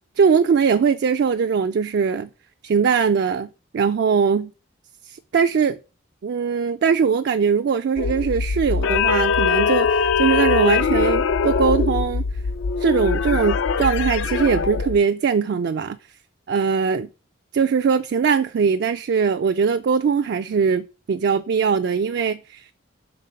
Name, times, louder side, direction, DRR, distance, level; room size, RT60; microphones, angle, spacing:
voice 1, 0.2-2.3 2.6-4.5 5.1-5.8 6.2-12.2 12.8-16.0 16.5-17.1 17.5-22.7, right 6 dB, 60° right, 0.3 m, -21 dB
sound 1, 8.0-15.0, left 5 dB, 70° left, 0.4 m, -22 dB
5.2 x 3.5 x 5.5 m
head